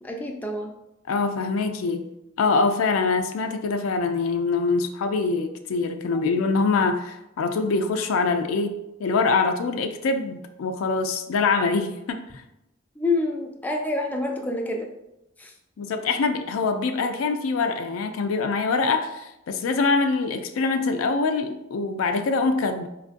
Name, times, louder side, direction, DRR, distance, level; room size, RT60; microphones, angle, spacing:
voice 1, 0.0-0.7 6.1-6.2 13.0-14.9 15.4-15.5, left 2 dB, 10° left, 1 dB, 0.3 m, -27 dB
voice 2, 1.1-2.0 2.4-12.2 15.8-22.9, left 4 dB, 85° left, 7 dB, 0.4 m, -24 dB
4.5 x 2.4 x 2.5 m, 0.88 s
head